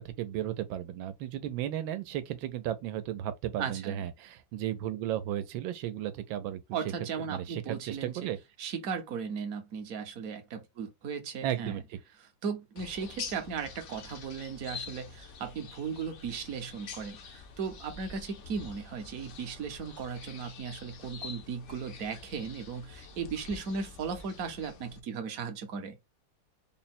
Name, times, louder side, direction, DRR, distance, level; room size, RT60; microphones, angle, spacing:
voice 1, 0.0-6.6 7.3-8.4 11.4-12.0, right 12 dB, 90° right, 1.4 m, -34 dB
voice 2, 3.6-4.0 6.7-8.2 8.6-11.8 12.4-26.0, right 6 dB, 60° right, 0.9 m, -37 dB
sound 1, 12.8-25.0, left 5 dB, 80° left, 0.6 m, -46 dB
3.9 x 2.1 x 4.1 m
omnidirectional pair, 2.1 m